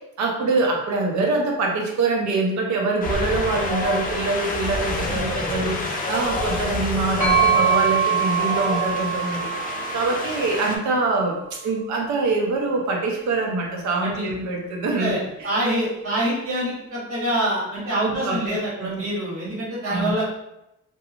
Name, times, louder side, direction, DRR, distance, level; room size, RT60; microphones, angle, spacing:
voice 1, 0.2-9.5 9.9-15.2 18.0-18.9 19.9-20.1, right 3 dB, 70° right, 0 dB, 0.7 m, -24 dB
Wind, 3.0-10.8, left 2 dB, 30° left, 0.5 m, -28 dB
sound 1, 7.2-11.0, right 7 dB, 5° right, 1.0 m, -23 dB
voice 2, 14.9-20.2, right 1 dB, 50° right, -6 dB, 1.4 m, -25 dB
2.9 x 2.3 x 2.4 m, 0.86 s
cardioid pair, 90°, 30 cm